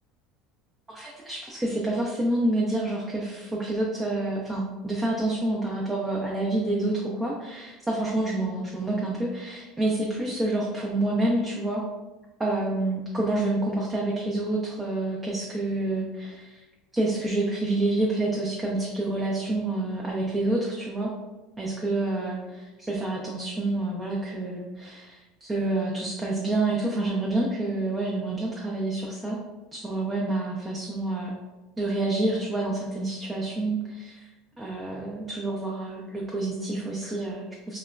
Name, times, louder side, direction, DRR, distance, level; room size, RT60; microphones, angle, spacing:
voice 1, 0.9-11.8 12.4-16.6 16.9-21.1 21.6-29.4 29.7-31.3 31.8-34.3 34.6-37.8, right 2 dB, 15° right, -3 dB, 0.5 m, -28 dB
2.8 x 2.1 x 2.4 m, 1.1 s
hypercardioid pair, 80°, 0 cm